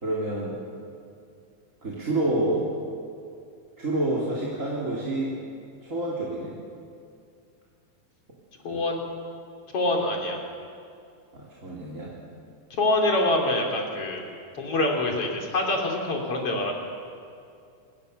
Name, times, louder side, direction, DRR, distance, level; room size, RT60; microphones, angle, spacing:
voice 1, 0.0-0.6 1.8-2.7 3.8-5.4 5.8-6.6 8.7-8.8 11.3-12.1, right 1 dB, 25° right, -4 dB, 3.4 m, -28 dB
voice 2, 8.6-9.0 9.7-10.4 12.8-14.2 14.6-16.7, left 2 dB, 50° left, 1 dB, 4.1 m, -25 dB
26.5 x 22.0 x 6.7 m, 2.4 s
omnidirectional pair, 3.5 m